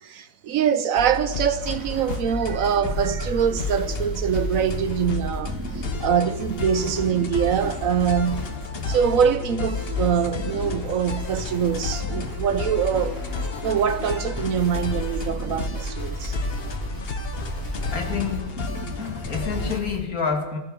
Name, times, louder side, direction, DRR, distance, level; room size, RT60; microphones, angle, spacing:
voice 1, 0.0-8.5 8.8-13.2 13.6-16.4, right 8 dB, 65° right, 1.1 m, -24 dB
sound 1, 1.0-19.8, left 3 dB, 45° left, 1.1 m, -32 dB
sound 2, 1.6-20.0, left 1 dB, 15° right, 2.2 m, -35 dB
voice 2, 17.9-20.6, left 5 dB, 70° left, 2.3 m, -29 dB
25.0 x 15.0 x 3.7 m
omnidirectional pair, 1.6 m